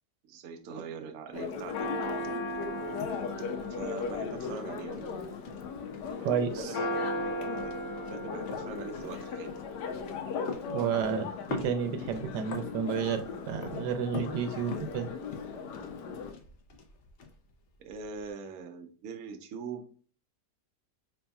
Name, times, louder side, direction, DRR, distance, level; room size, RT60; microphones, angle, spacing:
voice 1, 0.3-1.9 3.7-5.1 6.5-7.2 7.6-7.7 8.1-9.6 17.8-19.8, right 5 dB, 65° right, 5 dB, 0.9 m, -42 dB
Church bell, 1.3-16.3, left 3 dB, 80° left, 1.2 m, -36 dB
sound 1, 1.3-18.3, left 4 dB, 60° left, 0.8 m, -46 dB
voice 2, 6.2-6.7 10.7-15.1, right 7 dB, 85° right, 7 dB, 1.3 m, -31 dB
4.1 x 3.4 x 2.3 m, 0.41 s
omnidirectional pair, 1.8 m